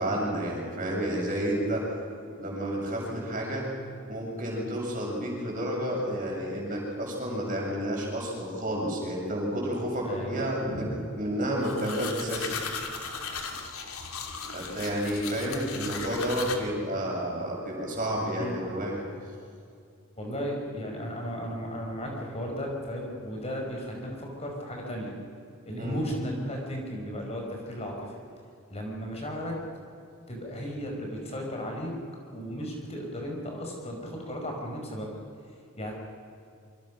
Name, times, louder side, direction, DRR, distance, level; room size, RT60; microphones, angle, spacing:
voice 1, 0.0-1.8 2.4-3.6 4.1-10.8 11.2-12.5 14.5-19.0 25.7-26.0, equal, 40° right, -2 dB, 7.8 m, -30 dB
voice 2, 10.0-11.1 18.4-18.8 20.2-25.2 25.7-28.1 28.7-29.6 30.3-31.9 32.3-35.1 35.8-35.9, equal, 30° left, 0 dB, 5.2 m, -35 dB
sound 1, 11.6-16.6, left 5 dB, 90° left, 2.9 m, -37 dB
27.0 x 25.5 x 6.4 m, 2.3 s
head